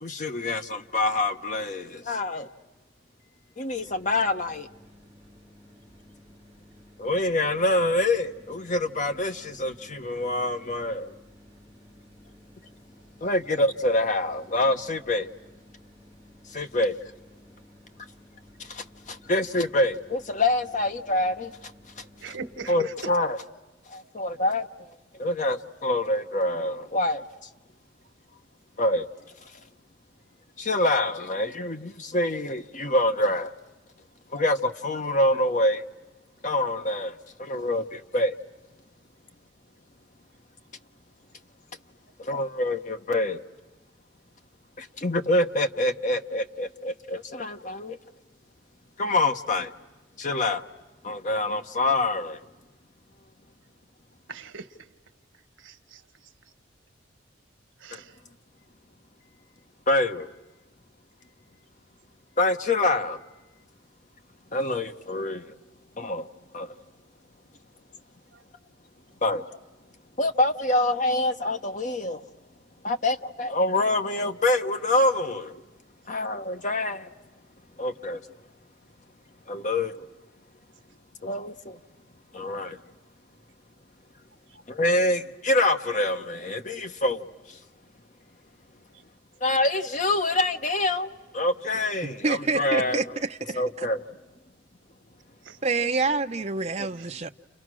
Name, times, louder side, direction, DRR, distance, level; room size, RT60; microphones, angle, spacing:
voice 1, 0.0-2.5 3.6-4.7 7.0-11.1 13.2-15.3 16.5-17.0 18.6-21.7 22.0-22.4 22.7-23.4 23.9-24.7 25.1-27.2 28.8-29.1 29.4-29.6 30.6-33.5 34.3-35.8 36.4-38.3 42.2-43.4 44.8-48.0 49.0-49.7 50.2-50.6 51.0-52.4 57.9-58.0 59.9-60.3 62.4-63.2 64.5-65.5 66.0-66.3 66.5-66.7 69.2-69.5 70.2-72.3 72.8-75.6 76.1-77.1 77.8-78.2 79.5-80.1 81.2-81.8 82.3-82.8 84.7-87.6 89.4-93.0 93.5-94.1 96.8-96.9, left 2 dB, 40° left, 1.0 m, -26 dB
sound 1, 3.7-23.0, left 1 dB, 15° left, 4.9 m, -54 dB
voice 2, 22.2-23.1 54.3-54.7 55.6-56.0 57.8-58.1 95.4-95.6, right 4 dB, 90° right, 1.3 m, -39 dB
voice 3, 92.0-93.9 95.6-97.3, right 3 dB, 35° right, 0.8 m, -27 dB
30.0 x 30.0 x 6.2 m
head